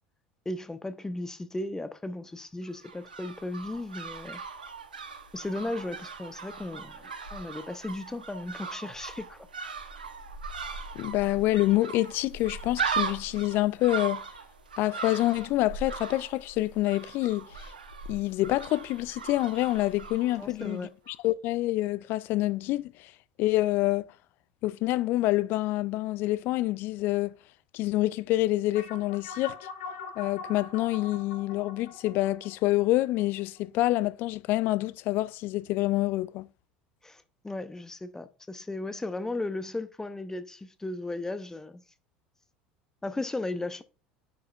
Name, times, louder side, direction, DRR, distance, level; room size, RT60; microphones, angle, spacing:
voice 1, 0.5-4.4 5.3-9.5 20.4-20.9 37.0-41.8 43.0-43.8, left 2 dB, 10° left, 0.7 m, -36 dB
sound 1, 2.6-20.8 21.1-21.2, right 5 dB, 80° right, 1.0 m, -39 dB
voice 2, 10.9-14.2 14.8-17.7 18.1-20.9 21.2-23.1 23.4-24.1 24.6-27.3 27.7-29.6 30.2-36.5, left 17 dB, 50° left, 0.4 m, -27 dB
sound 2, 28.7-33.6, left 5 dB, 70° left, 1.6 m, -42 dB
9.5 x 5.7 x 2.4 m
figure-of-eight pair, 70°, 5 cm